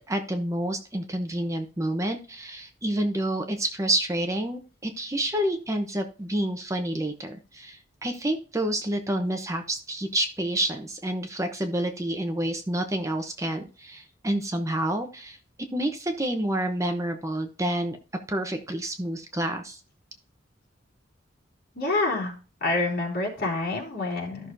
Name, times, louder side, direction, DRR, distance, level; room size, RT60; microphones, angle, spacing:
voice 1, 0.1-15.4 15.7-18.0 18.3-19.8, right 1 dB, 15° right, 5 dB, 0.9 m, -28 dB
voice 2, 21.7-24.5, left 2 dB, 55° left, -1 dB, 3.4 m, -27 dB
14.0 x 6.2 x 2.7 m, 0.35 s
head